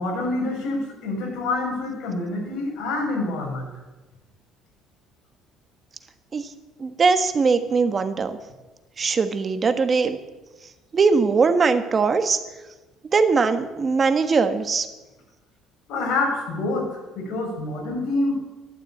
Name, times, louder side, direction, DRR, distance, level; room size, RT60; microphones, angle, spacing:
voice 1, 0.0-3.7 15.9-16.9 17.2-18.3, left 2 dB, 70° left, 1 dB, 5.6 m, -26 dB
voice 2, 6.8-8.4 9.0-10.2 10.9-12.4 13.1-14.9, right 4 dB, 30° right, 10 dB, 1.4 m, -20 dB
13.0 x 12.5 x 8.5 m, 1.1 s
cardioid pair, 130°, 0 cm